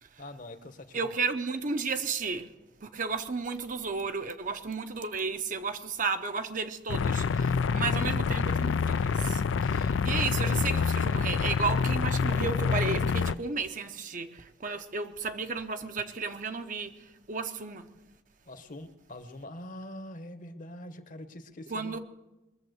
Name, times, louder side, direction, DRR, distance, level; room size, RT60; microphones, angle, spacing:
voice 1, 0.2-1.1 18.5-22.0, left 1 dB, 45° left, 1.0 m, -44 dB
voice 2, 0.9-2.5 2.8-17.9 21.7-22.0, right 4 dB, 45° right, 0.8 m, -33 dB
sound 1, 6.9-13.3, left 5 dB, 80° left, 0.4 m, -27 dB
21.5 x 7.2 x 8.0 m
head